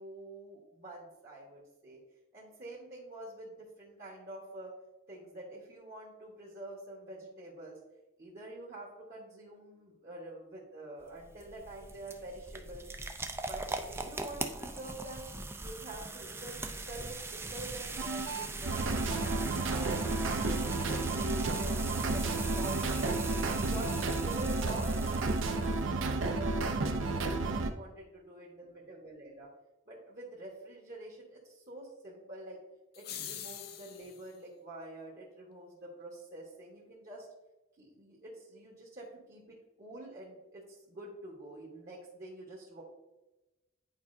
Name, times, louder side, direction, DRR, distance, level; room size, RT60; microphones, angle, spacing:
voice 1, 0.0-2.0 2.3-4.7 5.1-7.8 8.2-12.8 13.4-15.3 15.6-20.6 21.1-25.8 26.2-29.5 29.9-32.6 32.9-37.3 37.8-42.8, right 1 dB, 40° right, -4 dB, 1.2 m, -46 dB
sound 1, 11.0-25.9, right 3 dB, 10° right, 0.4 m, -41 dB
sound 2, 18.0-27.7, right 2 dB, 70° right, 0.6 m, -32 dB
sound 3, 32.9-34.3, left 9 dB, 50° left, 0.5 m, -43 dB
9.3 x 4.7 x 2.6 m, 1.0 s
head